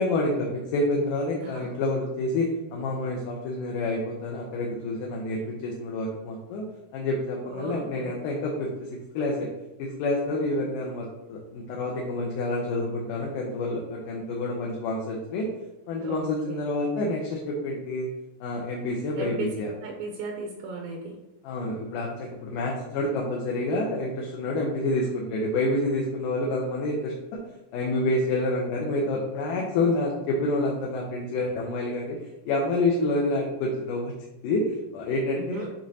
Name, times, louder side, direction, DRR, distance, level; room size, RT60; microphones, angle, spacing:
voice 1, 0.0-6.7 6.9-8.9 9.1-9.5 9.8-15.5 15.9-18.1 18.4-19.7 21.4-27.4 27.7-32.2 32.5-34.1 34.4-35.7, left 2 dB, 75° left, -2 dB, 2.3 m, -28 dB
voice 2, 1.4-1.7 7.4-8.2 16.0-16.7 19.1-19.5 19.8-21.2 35.4-35.7, right 3 dB, 80° right, 2 dB, 2.3 m, -36 dB
10.5 x 3.8 x 2.8 m, 0.95 s
omnidirectional pair, 4.1 m